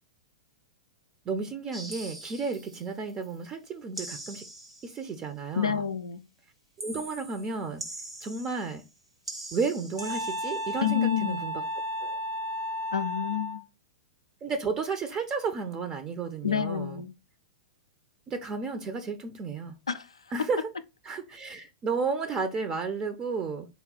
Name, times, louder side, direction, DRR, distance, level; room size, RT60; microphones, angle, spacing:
voice 1, 1.3-4.4 4.8-5.8 6.8-7.8 8.2-8.8 9.5-11.6 12.0-12.2 14.4-17.0 18.3-19.7 20.3-20.7 21.0-23.7, right 4 dB, 25° right, 0.5 m, -32 dB
sound 1, 1.7-3.4 3.9-5.1 6.8-8.9 9.2-10.9, right 1 dB, 90° right, 1.1 m, -43 dB
voice 2, 5.5-6.2 10.8-11.4 12.9-13.6 16.4-17.1 19.9-20.1, left 8 dB, 75° left, 0.3 m, -28 dB
Wind instrument woodwind instrument, 10.0-13.6, equal, 60° right, 0.8 m, -33 dB
4.0 x 2.3 x 3.6 m
figure-of-eight pair, 100°, 3 cm